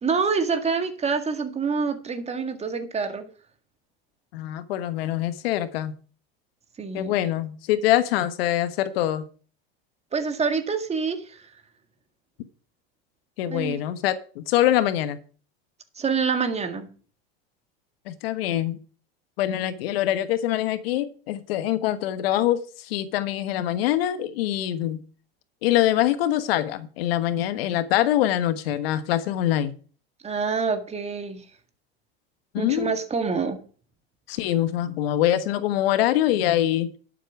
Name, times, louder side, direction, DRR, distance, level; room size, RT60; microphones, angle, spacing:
voice 1, 0.0-3.3 6.8-7.2 10.1-11.5 13.5-13.8 16.0-16.9 30.2-31.5 32.6-33.6, right 5 dB, 20° right, 8 dB, 2.0 m, -26 dB
voice 2, 4.3-5.9 6.9-9.3 13.4-15.2 18.1-18.8 19.4-25.0 25.6-29.7 32.5-32.9 34.3-36.9, left 12 dB, 75° left, 13 dB, 1.3 m, -24 dB
11.5 x 7.7 x 4.7 m, 0.40 s
supercardioid pair, 120°, 30 cm